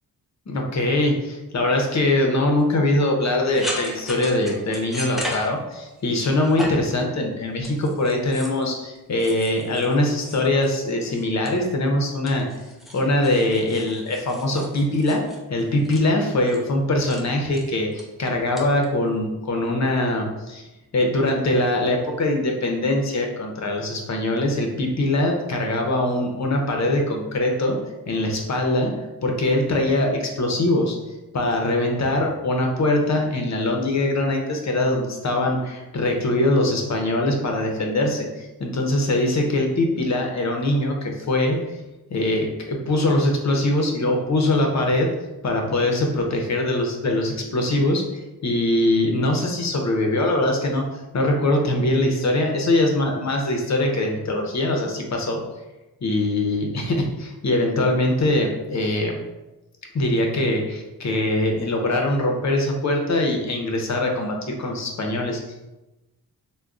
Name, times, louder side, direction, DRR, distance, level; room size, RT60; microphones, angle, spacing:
voice 1, 0.5-12.5 12.9-15.2 15.5-20.6 20.9-27.8 28.1-31.0 31.3-41.8 42.1-45.1 45.4-48.0 48.4-55.4 56.0-59.2 59.9-65.7, left 1 dB, 45° left, 2 dB, 0.7 m, -22 dB
sound 1, 3.5-6.0 6.3-7.0 7.6-8.6 9.2-10.8 11.1-11.9 12.3-16.0 16.5-16.7 17.1-17.2 17.5-18.0 18.6-18.8, equal, ahead, 0.5 m, -36 dB
3.4 x 2.2 x 2.4 m, 1.0 s
cardioid pair, 70°, 39 cm